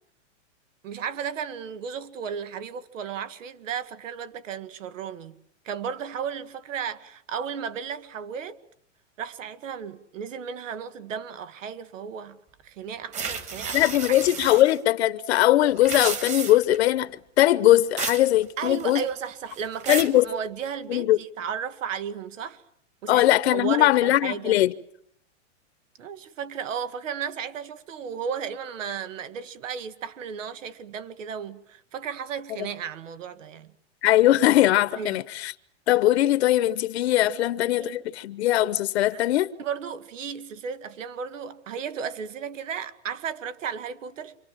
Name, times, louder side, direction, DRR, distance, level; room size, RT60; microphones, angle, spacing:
voice 1, 0.8-5.4 5.6-8.6 9.2-13.8 14.1-14.6 18.6-22.6 23.0-24.6 26.0-33.7 34.9-35.2 37.3-37.4 37.7-38.0 39.1-39.2 39.6-44.4, right 7 dB, 90° right, 1.9 m, -34 dB
sound 1, 13.1-14.8 15.7-16.8 18.0-18.3 18.6-19.1 19.5-20.2, right 5 dB, 20° right, 1.7 m, -32 dB
voice 2, 13.7-17.1 17.4-19.0 19.9-20.2 20.9-21.2 23.1-24.7 34.0-35.5 35.9-39.5, left 14 dB, 60° left, 1.0 m, -20 dB
28.0 x 25.0 x 7.5 m
supercardioid pair, 160°, 37 cm